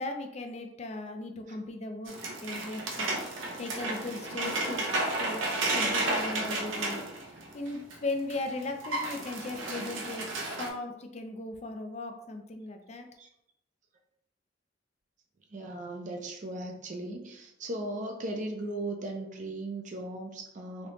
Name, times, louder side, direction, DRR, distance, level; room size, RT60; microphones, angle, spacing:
voice 1, 0.0-2.1 2.4-4.8 5.2-7.0 7.5-13.1, left 2 dB, 35° left, 5 dB, 0.4 m, -37 dB
sound 1, 2.1-8.0 8.3-8.4 8.6-10.7, right 2 dB, 85° right, 0.7 m, -32 dB
voice 2, 15.5-20.9, right 1 dB, 40° right, 2 dB, 0.5 m, -37 dB
3.2 x 2.8 x 3.0 m, 0.79 s
head